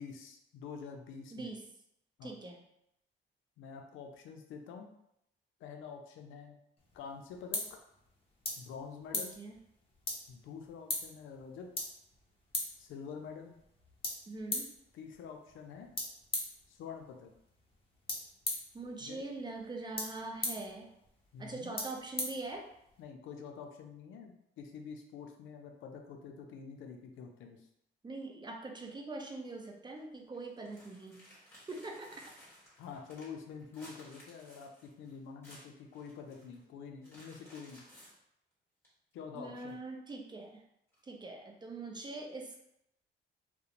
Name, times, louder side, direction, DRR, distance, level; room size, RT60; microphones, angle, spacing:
voice 1, 0.0-1.5 2.2-2.4 3.6-4.9 5.6-6.6 6.9-7.6 8.6-9.4 10.3-11.7 12.8-13.6 14.9-15.9 16.7-17.3 19.0-19.2 21.3-21.7 23.0-27.7 32.8-37.8 39.1-39.8, left 6 dB, 80° left, 3 dB, 0.4 m, -47 dB
voice 2, 2.2-2.6 9.1-9.6 14.3-14.7 18.7-20.9 21.4-22.7 28.0-31.2 31.7-32.2 39.3-40.6 41.0-42.6, right 2 dB, 20° right, 1 dB, 0.5 m, -43 dB
sound 1, 6.8-23.0, left 2 dB, 30° left, 0.7 m, -42 dB
sound 2, 29.2-29.5 30.0-30.1 30.3-36.6 37.0-38.1 38.8-38.9 39.4-40.0 40.9-41.0, equal, 10° left, 1.3 m, -58 dB
2.4 x 2.1 x 2.9 m, 0.79 s
cardioid pair, 90°, 20 cm